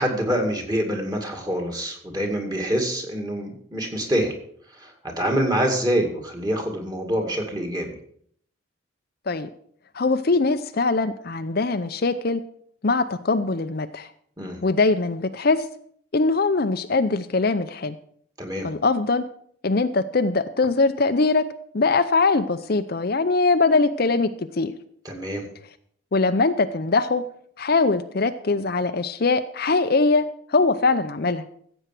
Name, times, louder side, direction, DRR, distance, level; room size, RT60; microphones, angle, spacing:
voice 1, 0.0-4.3 4.8-8.0 14.4-14.6 18.4-18.7 25.0-25.5, equal, 20° right, 2 dB, 2.3 m, -26 dB
voice 2, 9.9-12.4 12.8-14.1 14.6-15.6 16.1-18.0 18.6-19.2 19.6-21.5 21.7-24.7 26.1-27.3 27.6-31.5, left 3 dB, 45° left, 9 dB, 0.6 m, -22 dB
15.0 x 8.0 x 6.0 m, 0.63 s
head